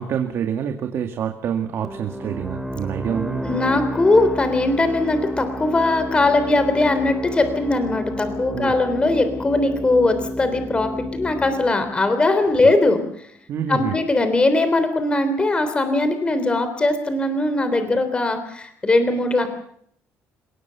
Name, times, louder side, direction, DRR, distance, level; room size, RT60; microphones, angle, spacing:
voice 1, 0.0-3.6 8.5-8.7 13.5-14.0, right 8 dB, 55° right, 5 dB, 2.0 m, -27 dB
sound 1, 1.8-13.2, equal, 5° right, 2.5 m, -31 dB
voice 2, 3.4-13.0 13.7-19.5, left 2 dB, 20° left, 9 dB, 3.4 m, -20 dB
29.0 x 18.0 x 7.0 m, 0.68 s
cardioid pair, 135°, 5 cm